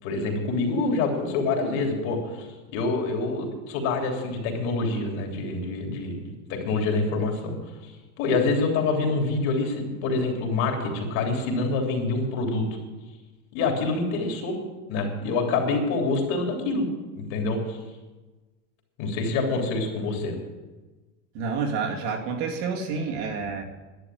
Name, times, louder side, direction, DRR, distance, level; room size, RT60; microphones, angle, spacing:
voice 1, 0.0-2.5 2.7-6.2 6.5-7.6 7.8-7.9 8.2-12.7 13.5-14.6 14.9-16.9 17.1-17.8 19.0-20.3, left 3 dB, 45° left, 2 dB, 3.3 m, -26 dB
voice 2, 21.3-23.6, right 5 dB, 50° right, 1 dB, 2.2 m, -29 dB
11.5 x 10.0 x 9.2 m, 1.2 s
supercardioid pair, 170°, 39 cm